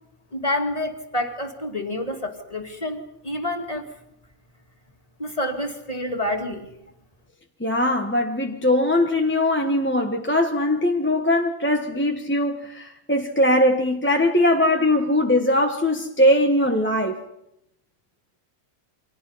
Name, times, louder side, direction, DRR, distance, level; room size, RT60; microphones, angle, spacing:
voice 1, 0.3-3.8 5.2-6.7, left 1 dB, 25° left, 4 dB, 2.4 m, -28 dB
voice 2, 7.6-17.2, left 1 dB, 10° left, 2 dB, 1.2 m, -21 dB
29.0 x 24.5 x 5.7 m, 0.83 s
omnidirectional pair, 1.6 m